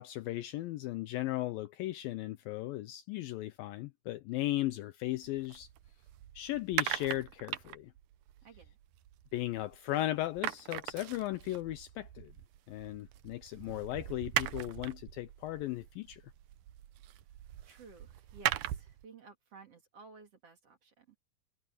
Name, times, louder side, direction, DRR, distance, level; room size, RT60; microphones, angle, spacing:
voice 1, 0.0-5.7 6.4-7.9 9.3-12.3 12.7-16.2, left 15 dB, 85° left, 2.1 m, -36 dB
sound 1, 5.2-9.9 10.2-19.0, right 14 dB, 75° right, 2.0 m, -40 dB
voice 2, 8.4-8.8 17.6-21.2, right 4 dB, 40° right, 3.6 m, -55 dB
omnidirectional pair, 4.7 m